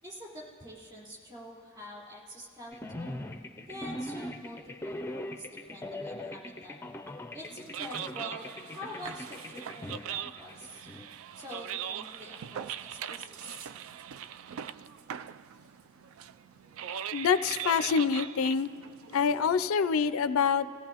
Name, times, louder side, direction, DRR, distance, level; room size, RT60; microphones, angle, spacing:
voice 1, 0.0-3.2 3.7-6.8 7.3-10.9 11.4-13.7, equal, 25° right, -5 dB, 3.8 m, -46 dB
sound 1, 2.7-11.1, left 1 dB, 10° left, 0.4 m, -41 dB
sound 2, 7.5-19.7, right 9 dB, 70° right, 0.3 m, -41 dB
voice 2, 17.1-18.7 19.1-20.7, left 6 dB, 75° left, 12 dB, 0.4 m, -26 dB
27.5 x 16.0 x 2.9 m, 2.4 s
head